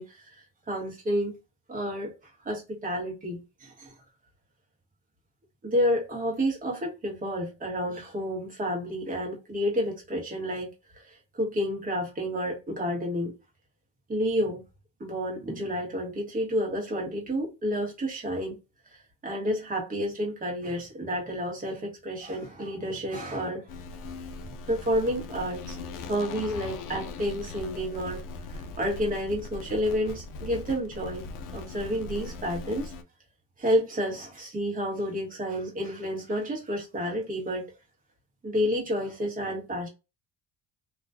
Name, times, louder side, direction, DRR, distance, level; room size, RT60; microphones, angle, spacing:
voice 1, 0.0-1.3 1.7-2.1 2.4-3.9 5.6-10.7 11.0-13.3 14.1-14.6 15.0-18.6 18.9-23.7 24.4-25.8 26.1-28.2 28.5-31.3 31.5-32.9 33.6-37.7 38.4-39.9, equal, 25° right, 1.0 m, -30 dB
sound 1, 23.7-33.0, left 3 dB, 85° left, 0.5 m, -40 dB
2.4 x 2.3 x 2.3 m
cardioid pair, 130°, 32 cm